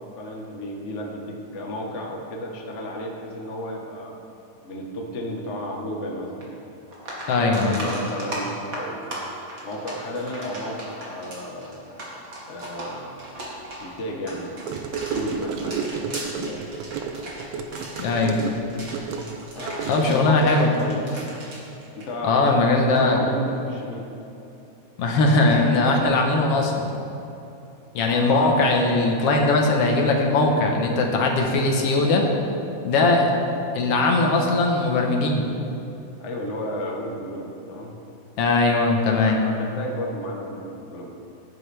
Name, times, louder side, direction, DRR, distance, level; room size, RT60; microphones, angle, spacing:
voice 1, 0.0-4.1 4.6-6.6 7.3-9.2 9.6-12.0 12.5-13.2 13.8-14.7 15.1-16.1 16.4-16.7 19.5-21.3 21.9-24.1 28.0-28.4 36.2-38.0 39.2-41.1, left 1 dB, 80° left, 0 dB, 0.6 m, -33 dB
sound 1, 6.4-6.5 6.9-22.5 22.8-23.1 25.5-25.6, right 1 dB, 35° right, 1.8 m, -37 dB
voice 2, 7.3-7.8 18.0-18.4 19.9-20.7 22.2-23.2 25.0-26.9 27.9-32.2 32.8-33.3 33.7-35.4 38.4-39.4, left 2 dB, 60° left, 1 dB, 1.9 m, -20 dB
Gurgling / Car passing by / Sink (filling or washing), 14.7-20.3, right 6 dB, 75° right, 1.6 m, -31 dB
17.0 x 9.5 x 3.4 m, 2.8 s
omnidirectional pair, 3.4 m